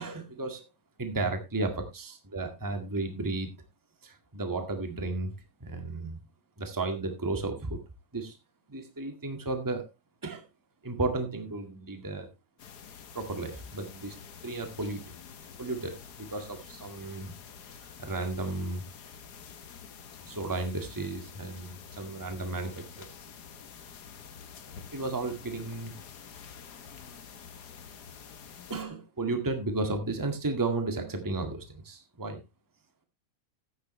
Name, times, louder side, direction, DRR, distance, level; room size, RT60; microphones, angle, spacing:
voice 1, 0.0-0.6 1.0-3.5 4.0-5.3 5.6-6.2 6.6-7.8 8.1-8.4 8.7-9.9 10.2-10.4 10.8-12.3 13.1-14.1 14.4-15.0 15.6-17.3 18.0-18.8 20.3-23.1 24.9-25.9 28.7-32.4, right 2 dB, 10° right, 6 dB, 1.2 m, -33 dB
sound 1, 12.6-28.8, left 7 dB, 60° left, 1.0 m, -48 dB
13.5 x 9.4 x 3.2 m, 0.24 s
omnidirectional pair, 3.4 m